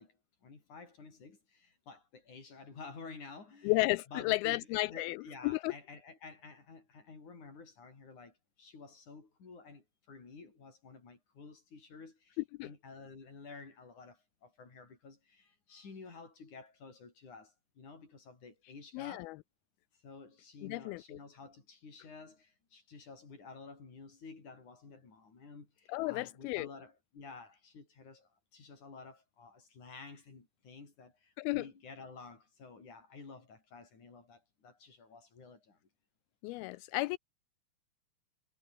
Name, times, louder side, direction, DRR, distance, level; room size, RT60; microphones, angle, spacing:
voice 1, 0.0-3.7 4.1-19.3 20.0-35.8, left 4 dB, 45° left, 6.6 m, -52 dB
voice 2, 3.6-5.7 12.6-12.7 18.9-19.4 20.6-21.2 25.9-26.7 31.4-31.7 36.4-37.2, left 21 dB, 85° left, 2.2 m, -33 dB
omnidirectional pair, 4.9 m